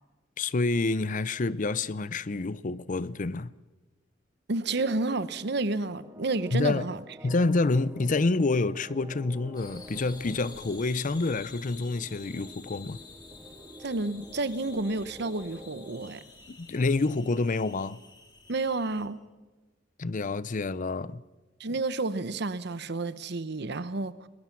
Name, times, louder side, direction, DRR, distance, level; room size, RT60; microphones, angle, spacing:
voice 1, 0.4-3.5 6.5-6.8 7.2-13.0 16.5-18.0 20.0-21.2, left 3 dB, 45° left, 0.6 m, -28 dB
voice 2, 4.5-7.0 13.8-16.2 18.5-19.2 21.6-24.3, right 3 dB, 60° right, 0.9 m, -30 dB
sound 1, 4.7-16.1, right 1 dB, 15° right, 0.7 m, -50 dB
sound 2, 9.5-19.1, left 4 dB, 20° left, 2.5 m, -49 dB
21.0 x 21.0 x 6.0 m
head